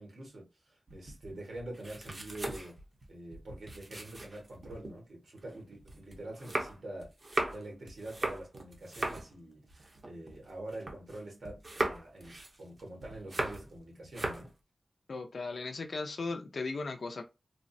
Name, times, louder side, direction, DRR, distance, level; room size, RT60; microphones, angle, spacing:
voice 1, 0.0-2.8 3.1-7.1 7.5-14.5, right 1 dB, 85° right, 1.3 m, -45 dB
sound 1, 0.9-4.9 5.4-11.2 11.4-13.8 14.0-14.5, right 2 dB, 45° right, 0.7 m, -38 dB
voice 2, 15.1-17.2, left 3 dB, 75° left, 0.4 m, -37 dB
3.3 x 2.0 x 2.6 m
wide cardioid pair, 95°, 0 cm